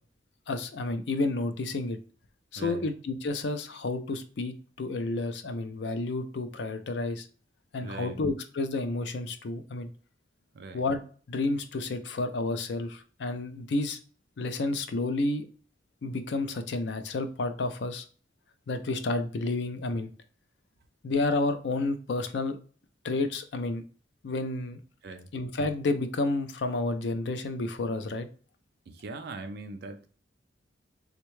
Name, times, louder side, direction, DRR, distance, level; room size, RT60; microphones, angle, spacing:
voice 1, 0.5-2.0 2.5-7.3 7.7-9.9 10.7-11.0 11.3-14.0 14.4-15.5 16.0-18.0 18.7-20.1 21.0-22.6 23.0-23.8 24.2-24.8 25.3-28.3, left 2 dB, 65° left, 0.4 m, -30 dB
voice 2, 2.6-2.9 7.8-8.2 10.5-10.9 25.0-25.3 28.9-30.1, right 3 dB, 60° right, 0.4 m, -40 dB
3.5 x 2.2 x 3.0 m
head